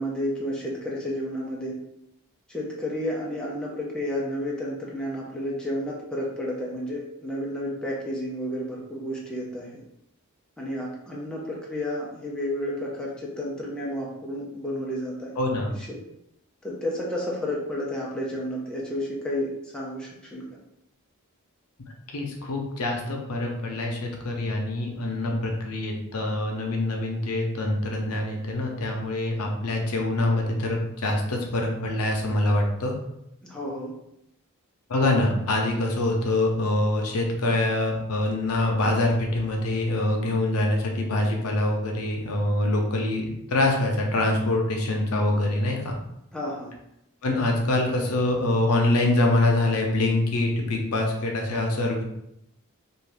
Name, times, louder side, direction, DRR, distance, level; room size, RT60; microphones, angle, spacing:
voice 1, 0.0-1.8 2.5-9.8 10.6-15.3 15.9-16.0 16.6-20.4 33.4-33.9 46.3-46.7, left 1 dB, 5° left, -4 dB, 0.5 m, -31 dB
voice 2, 15.4-15.7 22.1-32.9 34.9-45.9 47.2-52.0, left 2 dB, 85° left, 1 dB, 0.6 m, -25 dB
2.6 x 2.4 x 3.3 m, 0.80 s
head